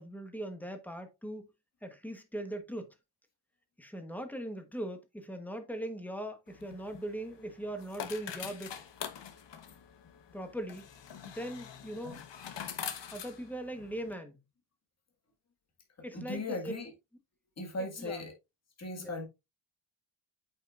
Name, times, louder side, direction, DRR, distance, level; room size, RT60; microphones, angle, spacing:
voice 1, 0.0-1.5 1.8-2.9 3.8-8.7 10.3-10.8 11.3-12.2 13.1-14.4 16.0-16.7 18.0-18.2 19.0-19.2, right 1 dB, 5° left, 1.1 m, -40 dB
sound 1, 6.5-14.1, left 8 dB, 55° left, 1.2 m, -44 dB
voice 2, 16.1-16.9 17.6-18.3 18.8-19.3, left 2 dB, 30° left, 1.9 m, -37 dB
8.3 x 5.8 x 2.5 m
wide cardioid pair, 140°, 50 cm